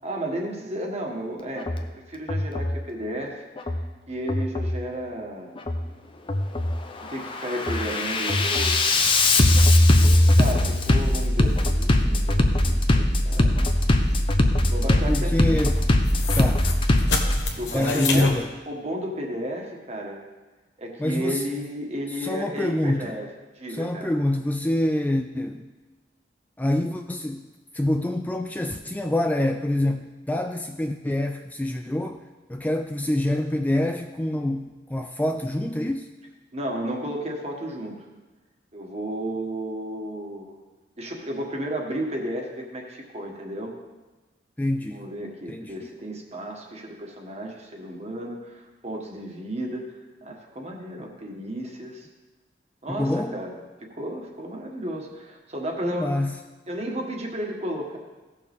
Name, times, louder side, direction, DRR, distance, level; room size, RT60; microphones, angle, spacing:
voice 1, 0.0-3.4 4.1-5.6 7.0-8.8 10.0-13.6 14.7-15.6 17.6-18.3 18.7-20.2 20.8-23.3 23.5-24.1 36.5-38.0 38.7-40.6 41.0-43.7 44.9-49.9 50.2-52.1 52.8-56.1 56.7-58.0, right 1 dB, 35° right, 1 dB, 1.5 m, -33 dB
Bass drum, 1.6-1.8 2.3-2.8 3.6-3.8 4.3-4.8 5.6-5.8 6.3-6.8 7.2-17.4, left 1 dB, 30° left, 0.7 m, -20 dB
sound 1, 8.9-18.3, left 3 dB, 70° left, 1.2 m, -35 dB
voice 2, 15.1-15.8 16.3-16.7 17.7-18.5 21.0-21.4 22.2-23.2 23.7-25.7 26.6-27.5 27.7-32.2 32.5-36.1 44.6-45.0 45.5-45.7 52.9-53.4 55.8-56.4, left 1 dB, 10° left, 5 dB, 0.3 m, -26 dB
16.5 x 6.5 x 3.6 m, 1.2 s
head